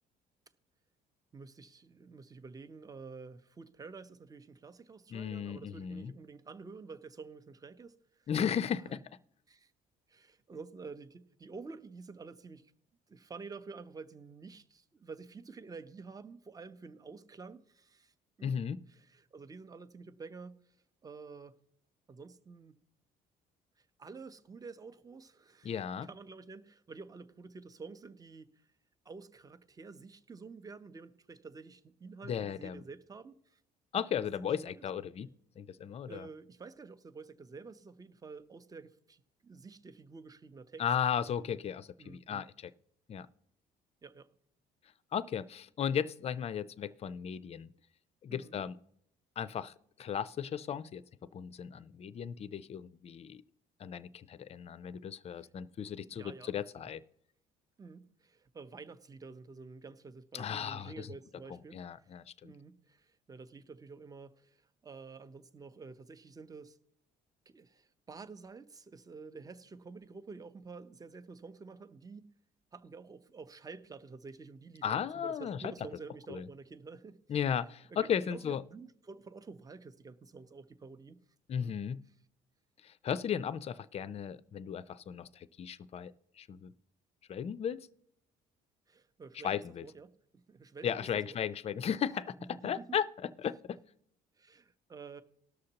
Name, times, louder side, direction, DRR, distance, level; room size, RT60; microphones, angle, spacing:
voice 1, 1.3-8.3 8.8-9.0 9.5-9.7 10.1-12.7 13.1-18.6 18.9-20.7 21.0-21.5 22.1-22.8 23.8-28.5 29.0-33.6 34.4-34.8 36.0-40.8 42.0-42.5 44.0-44.3 48.3-48.6 55.3-55.5 56.1-56.9 57.8-61.9 62.4-66.8 67.5-72.3 72.7-77.2 77.9-81.2 81.6-81.8 88.9-91.4 92.5-93.0 94.4-95.2, right 4 dB, 20° right, 0.7 m, -50 dB
voice 2, 5.1-6.1 8.3-9.0 18.4-18.8 25.6-26.1 32.2-32.8 33.9-35.3 35.6-36.3 40.8-42.7 43.1-43.3 45.1-47.7 48.2-48.7 49.4-49.7 50.0-51.0 51.3-53.4 53.8-57.0 60.3-61.1 61.7-62.5 74.8-75.7 76.3-76.4 77.3-78.6 81.5-82.0 82.8-86.7 87.3-87.8 89.4-89.9 90.8-93.8, left 8 dB, 40° left, 0.5 m, -35 dB
19.0 x 6.4 x 2.9 m
cardioid pair, 110°, 17 cm